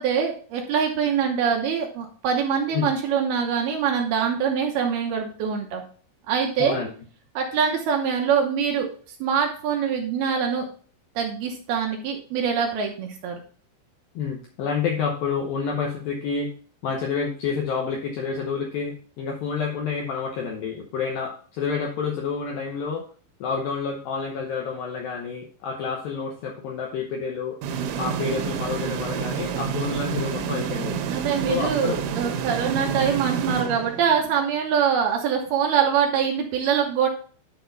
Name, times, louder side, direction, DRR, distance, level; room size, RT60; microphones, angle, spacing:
voice 1, 0.0-5.8 6.3-6.8 7.4-8.9 9.2-10.7 11.2-13.4 31.1-37.1, right 7 dB, 70° right, 2 dB, 2.4 m, -24 dB
voice 2, 6.6-6.9 14.1-16.5 16.8-23.0 23.4-27.6 27.9-31.0 31.5-32.0, left 5 dB, 75° left, 0 dB, 2.1 m, -29 dB
sound 1, 27.6-34.4, right 7 dB, 90° right, 3.4 m, -29 dB
11.0 x 4.5 x 3.9 m, 0.43 s
omnidirectional pair, 5.5 m